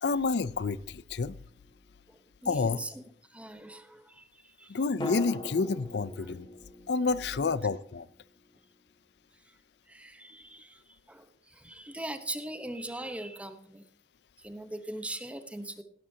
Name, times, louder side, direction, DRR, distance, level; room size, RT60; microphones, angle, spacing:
voice 1, 0.0-1.4 2.5-2.8 4.7-6.5 6.9-8.1, left 4 dB, 70° left, 19 dB, 0.5 m, -29 dB
sound 1, 1.4-2.6 5.0-9.0 9.2-9.3, left 1 dB, 25° left, 1.8 m, -42 dB
voice 2, 2.1-3.0 3.3-4.8 6.2-6.3 7.4-7.5 9.9-10.8 11.1-13.8 14.4-15.8, right 1 dB, 5° right, 9 dB, 0.9 m, -41 dB
17.0 x 11.0 x 2.8 m, 0.65 s
head